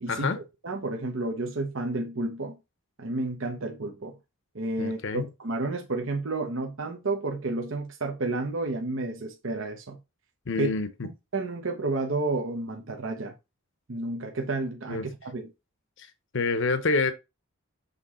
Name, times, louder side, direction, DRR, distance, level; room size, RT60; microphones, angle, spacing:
voice 1, 0.0-2.6 3.0-4.2 4.5-10.0 10.6-10.7 11.3-13.3 13.9-15.5, right 2 dB, 60° right, 0.9 m, -31 dB
voice 2, 4.8-5.3 10.5-10.9 14.9-15.0 16.0-16.1 16.3-17.1, left 3 dB, 55° left, 0.8 m, -27 dB
6.8 x 3.6 x 4.2 m
head